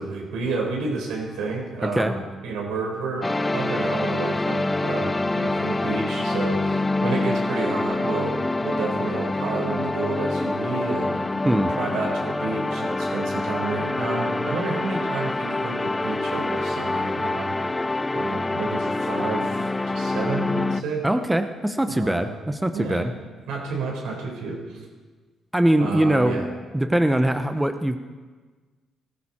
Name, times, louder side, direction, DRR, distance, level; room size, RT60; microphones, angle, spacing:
voice 1, 0.0-11.2 11.8-17.5 18.1-19.6 19.9-21.0 21.9-22.4 22.7-23.1 23.5-24.8 25.8-26.5, right 3 dB, 85° right, 0 dB, 4.5 m, -30 dB
voice 2, 1.8-2.1 11.4-11.7 21.0-23.1 25.5-26.4 26.7-28.0, right 1 dB, 10° right, 8 dB, 0.9 m, -22 dB
sound 1, 3.2-20.8, left 2 dB, 15° left, 0.5 m, -26 dB
18.5 x 15.0 x 4.4 m, 1.4 s
cardioid pair, 90°, 0 cm